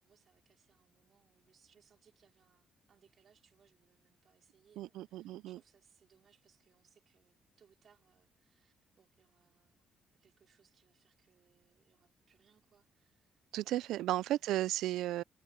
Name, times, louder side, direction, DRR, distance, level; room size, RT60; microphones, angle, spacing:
voice 1, 0.0-9.9 10.2-13.4, right 7 dB, 55° right, 3.6 m, -70 dB
voice 2, 4.8-5.6 13.5-15.2, right 14 dB, 90° right, 0.4 m, -34 dB
cardioid pair, 90°, 0 cm